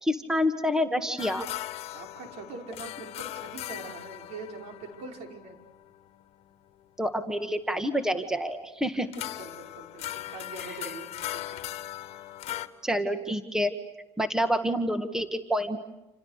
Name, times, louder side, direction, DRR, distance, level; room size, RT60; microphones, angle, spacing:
voice 1, 0.0-1.4 7.0-9.1 12.8-13.7 14.2-15.8, equal, 5° right, 9 dB, 1.8 m, -27 dB
sound 1, 1.2-6.5 9.1-12.7, left 14 dB, 60° left, 1.6 m, -39 dB
voice 2, 1.9-5.6 8.9-11.6, right 3 dB, 65° right, 4 dB, 5.6 m, -43 dB
29.0 x 28.5 x 6.7 m, 0.98 s
cardioid pair, 110°, 12 cm